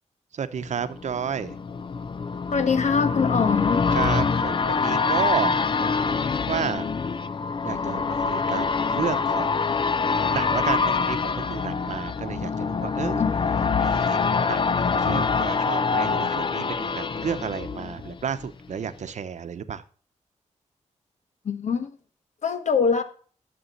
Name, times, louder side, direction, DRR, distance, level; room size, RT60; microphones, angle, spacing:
voice 1, 0.4-1.5 3.9-6.0 6.5-6.9 7.6-9.5 10.3-13.2 13.8-14.2 14.4-19.8, right 7 dB, 70° right, 0.8 m, -31 dB
sound 1, 0.7-18.5 18.9-19.0, left 5 dB, 40° left, 0.5 m, -25 dB
voice 2, 2.5-3.9 13.2-13.3 21.4-21.9 22.4-23.0, left 6 dB, 70° left, 1.3 m, -23 dB
11.0 x 6.8 x 4.0 m
wide cardioid pair, 135°, 13 cm